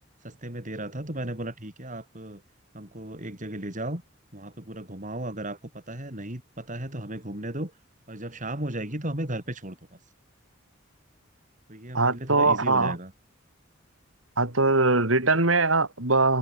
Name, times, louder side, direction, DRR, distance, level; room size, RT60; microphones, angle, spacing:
voice 1, 0.2-2.4 2.7-4.0 4.3-7.7 8.1-10.0 11.7-13.1, right 1 dB, 40° right, 6.6 m, -35 dB
voice 2, 11.9-13.0 14.4-16.4, right 3 dB, 90° right, 5.1 m, -22 dB
head